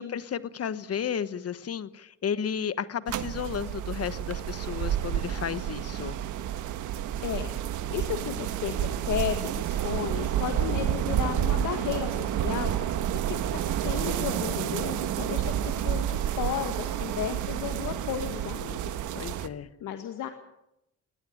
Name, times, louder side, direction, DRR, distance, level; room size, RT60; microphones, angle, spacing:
voice 1, 0.0-6.2 19.1-19.7, left 8 dB, 50° left, 13 dB, 1.3 m, -33 dB
sound 1, 3.1-19.5, right 10 dB, 85° right, 1.4 m, -30 dB
voice 2, 7.2-7.5 7.9-12.7 13.1-19.1 19.8-20.3, left 10 dB, 80° left, 6 dB, 1.9 m, -34 dB
20.5 x 18.0 x 8.7 m, 0.87 s
cardioid pair, 90°, 30 cm